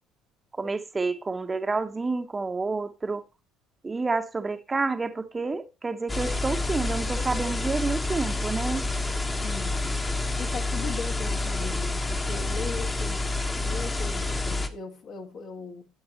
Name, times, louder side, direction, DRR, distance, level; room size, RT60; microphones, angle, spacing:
voice 1, 0.6-3.2 3.8-8.9, right 3 dB, 25° right, 0.9 m, -29 dB
sound 1, 6.1-14.7, left 2 dB, 25° left, 1.3 m, -28 dB
voice 2, 9.4-10.0 10.4-13.3 13.6-15.9, left 4 dB, 60° left, 1.9 m, -38 dB
12.0 x 8.2 x 3.0 m
hypercardioid pair, 65°, 0 cm